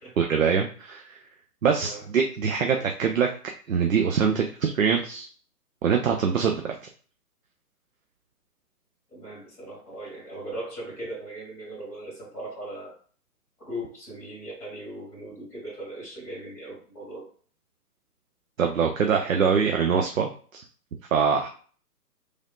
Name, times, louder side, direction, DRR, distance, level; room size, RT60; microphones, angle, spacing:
voice 1, 0.2-1.0 1.6-3.3 3.7-5.3 5.8-6.7 18.6-20.6 21.1-21.5, right 6 dB, 55° right, 3 dB, 0.5 m, -23 dB
voice 2, 9.1-12.9 13.6-17.3, right 1 dB, 5° left, -8 dB, 1.1 m, -38 dB
3.3 x 2.5 x 2.3 m, 0.42 s
figure-of-eight pair, 130°, 48 cm